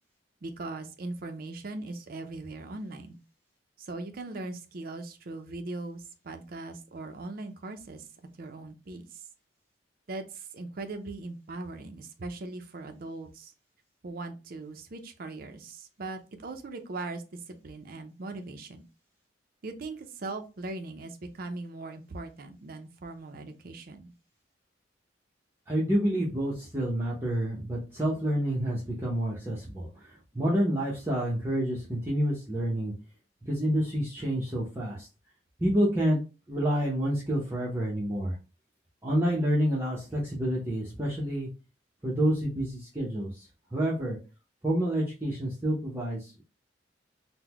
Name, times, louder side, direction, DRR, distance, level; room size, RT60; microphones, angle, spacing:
voice 1, 0.4-3.2 3.8-8.1 8.4-9.2 10.1-13.5 14.0-18.8 19.6-24.1, right 2 dB, 50° right, 6 dB, 0.5 m, -40 dB
voice 2, 25.7-30.1 30.3-32.9 33.4-35.1 35.6-36.2 36.5-38.3 39.0-41.5 42.0-44.2 44.6-46.4, equal, 15° right, -5 dB, 0.7 m, -28 dB
3.8 x 2.1 x 2.9 m, 0.31 s
head